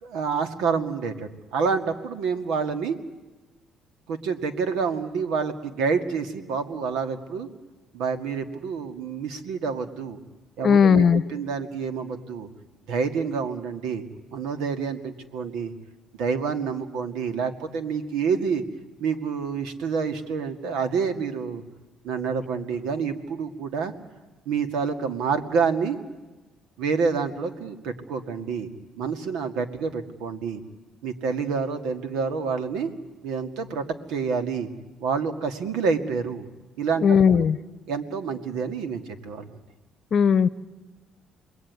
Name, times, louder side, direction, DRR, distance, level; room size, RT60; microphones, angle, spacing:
voice 1, 0.0-3.0 4.1-7.5 7.9-10.2 10.6-12.5 12.9-14.0 14.3-15.7 16.2-18.6 19.0-21.6 22.0-23.9 24.5-26.0 26.8-30.6 31.0-32.9 33.2-34.7 35.0-36.5 36.8-37.0 37.3-37.4 37.9-39.6, right 5 dB, 85° right, 9 dB, 2.2 m, -28 dB
voice 2, 10.6-11.2 37.0-37.6 40.1-40.5, left 7 dB, 50° left, 17 dB, 0.9 m, -17 dB
29.0 x 21.5 x 9.6 m, 1.2 s
cardioid pair, 90°, 0 cm